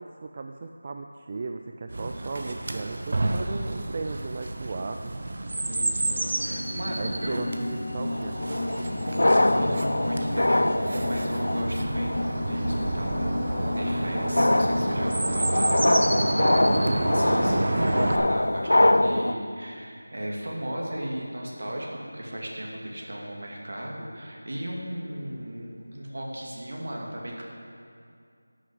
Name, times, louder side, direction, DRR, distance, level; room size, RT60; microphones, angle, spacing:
voice 1, 0.0-5.1 6.9-9.0 16.1-16.5, right 3 dB, 25° right, 5 dB, 0.3 m, -37 dB
Chirp tweet, 1.9-18.2, right 2 dB, 45° right, 0.9 m, -30 dB
voice 2, 5.7-7.5 9.0-27.4, right 1 dB, 60° right, -2 dB, 2.5 m, -36 dB
sound 1, 6.0-15.1, left 2 dB, 35° left, 0.9 m, -33 dB
sound 2, 8.1-19.3, left 1 dB, 75° left, 0.4 m, -25 dB
11.0 x 6.8 x 7.8 m, 2.4 s
figure-of-eight pair, 175°, 0 cm